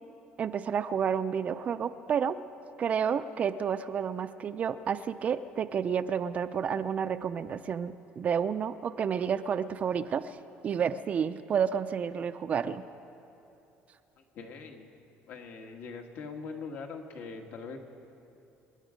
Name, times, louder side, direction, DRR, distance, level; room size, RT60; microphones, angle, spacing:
voice 1, 0.4-2.4 2.8-10.4 10.6-12.8, right 7 dB, 35° right, 11 dB, 0.5 m, -30 dB
voice 2, 14.3-14.9 15.3-17.8, left 4 dB, 60° left, 3 dB, 1.9 m, -42 dB
27.5 x 10.0 x 5.2 m, 3.0 s
cardioid pair, 130°, 4 cm